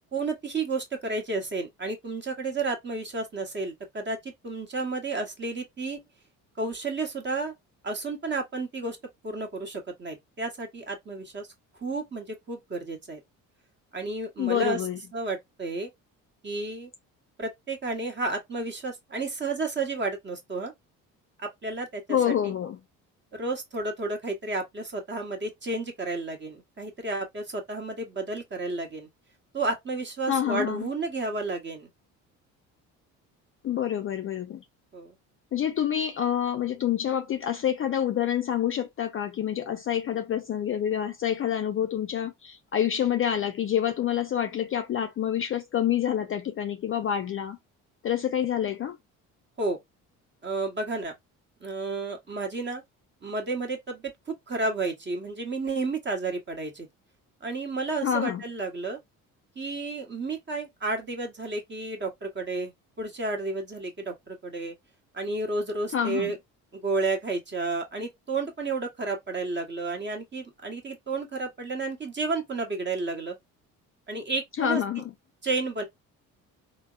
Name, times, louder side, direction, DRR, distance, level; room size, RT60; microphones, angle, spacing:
voice 1, 0.1-6.0 6.6-7.5 7.8-9.0 9.2-11.5 11.8-13.2 13.9-14.8 15.1-15.9 16.4-16.9 17.4-20.7 21.4-22.3 23.4-29.1 29.5-31.9 34.9-35.1 49.6-49.8 50.4-51.1 51.6-52.8 53.2-54.1 54.5-56.9 57.4-59.0 59.6-62.7 63.0-64.7 65.1-66.4 66.7-73.3 74.1-74.8 75.4-75.8, right 3 dB, 30° right, 1.1 m, -31 dB
voice 2, 14.4-15.0 22.1-22.8 30.3-30.9 33.6-34.6 35.5-47.6 48.0-49.0 58.0-58.4 65.9-66.3 74.6-75.0, left 10 dB, 35° left, 0.4 m, -27 dB
3.3 x 2.0 x 2.3 m
hypercardioid pair, 60°, 39 cm